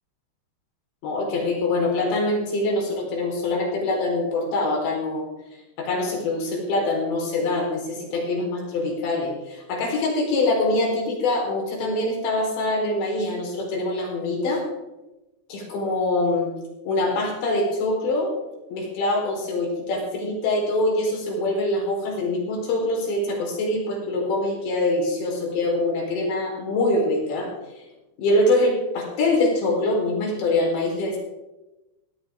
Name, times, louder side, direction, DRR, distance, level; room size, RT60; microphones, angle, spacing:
voice 1, 1.0-5.2 5.8-14.6 15.5-16.5 16.9-18.3 18.7-27.5 28.2-31.2, left 2 dB, 80° left, -1 dB, 6.5 m, -24 dB
17.0 x 16.5 x 3.7 m, 1.0 s
omnidirectional pair, 5.1 m